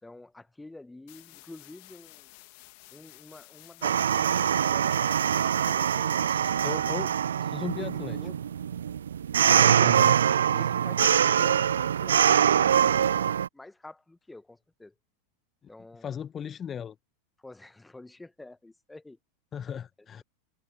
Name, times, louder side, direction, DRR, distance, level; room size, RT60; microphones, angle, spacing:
voice 1, 0.0-2.3 2.9-6.5 6.8-7.0 7.6-8.3 9.4-9.9 10.5-14.9 15.7-16.1 17.4-19.2 19.7-19.8, left 2 dB, 5° left, 1.4 m, -49 dB
sound 1, 1.1-6.1, left 32 dB, 50° left, 2.1 m, -52 dB
sound 2, 3.8-13.5, right 8 dB, 65° right, 0.4 m, -24 dB
voice 2, 6.6-7.1 7.5-8.2 9.8-10.1 16.0-16.9 19.5-20.2, left 8 dB, 25° left, 1.0 m, -36 dB
figure-of-eight pair, 85°, 0 cm